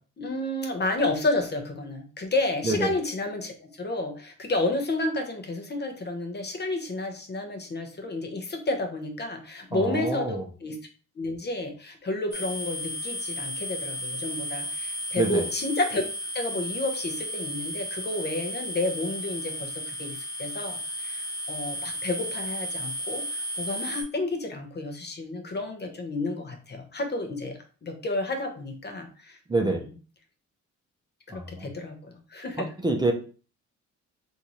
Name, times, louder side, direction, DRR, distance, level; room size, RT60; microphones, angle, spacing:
voice 1, 0.2-10.8 11.2-16.0 16.3-29.8 31.3-32.7, left 2 dB, 35° left, 4 dB, 0.8 m, -31 dB
voice 2, 9.7-10.4 15.2-15.4 29.5-29.8 31.3-31.7 32.8-33.1, right 2 dB, 15° right, 1 dB, 0.6 m, -26 dB
sound 1, 12.3-24.0, equal, 10° left, 1.2 m, -34 dB
3.5 x 2.7 x 2.9 m, 0.38 s
cardioid pair, 90°, 30 cm